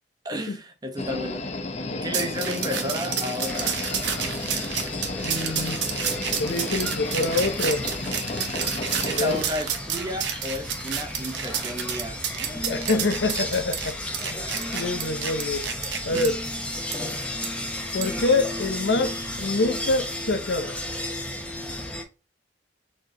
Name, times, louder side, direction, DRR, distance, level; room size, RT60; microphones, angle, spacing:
voice 1, 0.2-1.4 2.0-3.8 9.0-12.2, left 1 dB, 25° right, 0.8 m, -32 dB
sound 1, 1.0-9.4, left 3 dB, 40° left, 0.6 m, -33 dB
sound 2, 2.1-16.3 16.9-17.0 17.4-17.5 18.0-18.2, right 8 dB, 85° right, 0.9 m, -30 dB
sound 3, 3.4-22.0, left 1 dB, 5° left, 0.9 m, -34 dB
voice 2, 5.2-5.8 6.4-7.9 8.9-9.4 12.6-14.0 14.3-14.4 14.7-15.7 16.0-16.4 17.9-20.8, left 3 dB, 80° left, 0.8 m, -26 dB
4.5 x 3.1 x 3.7 m
head